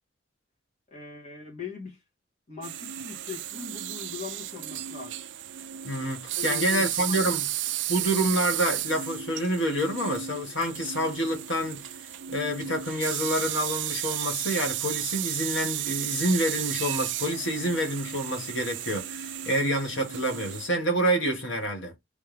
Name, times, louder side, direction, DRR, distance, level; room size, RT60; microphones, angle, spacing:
voice 1, 0.9-2.0 2.5-5.2 6.4-7.3, left 6 dB, 35° left, 1.8 m, -40 dB
sound 1, 2.6-20.7, right 12 dB, 70° right, 0.5 m, -33 dB
voice 2, 5.8-7.4 7.9-11.8 12.3-21.9, equal, 80° left, 1.6 m, -28 dB
3.5 x 3.4 x 3.4 m
head